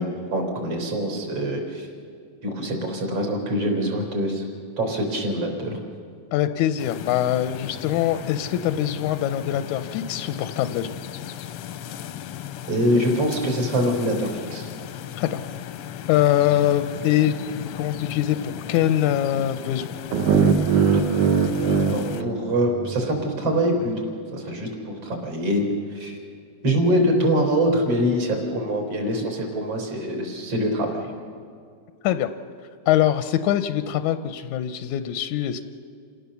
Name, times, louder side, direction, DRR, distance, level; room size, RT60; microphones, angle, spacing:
voice 1, 0.0-1.9 2.4-4.5 4.8-5.8 12.7-14.7 21.8-23.9 24.3-25.6 25.9-26.2 26.6-31.0, equal, 55° right, 2 dB, 4.9 m, -24 dB
voice 2, 6.3-11.0 15.2-15.4 16.1-19.8 32.0-32.3 32.9-35.6, left 12 dB, 90° left, 9 dB, 2.1 m, -23 dB
sound 1, 6.8-22.2, left 11 dB, 70° left, 1.4 m, -36 dB
sound 2, 20.1-23.2, right 5 dB, 80° right, 2.6 m, -21 dB
28.0 x 17.5 x 7.0 m, 2.3 s
omnidirectional pair, 3.3 m